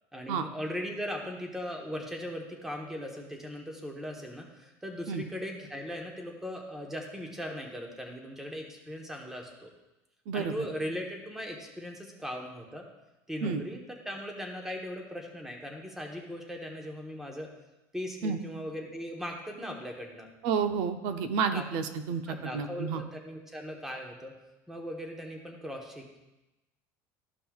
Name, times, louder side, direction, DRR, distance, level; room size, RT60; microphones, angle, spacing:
voice 1, 0.1-9.7 10.3-12.8 13.3-17.5 17.9-20.3 21.5-21.7 22.3-24.3 24.7-26.2, equal, 5° right, 1 dB, 1.0 m, -39 dB
voice 2, 20.4-23.0, right 6 dB, 65° right, 8 dB, 0.6 m, -30 dB
13.5 x 5.4 x 2.3 m, 1.0 s
cardioid pair, 155°, 8 cm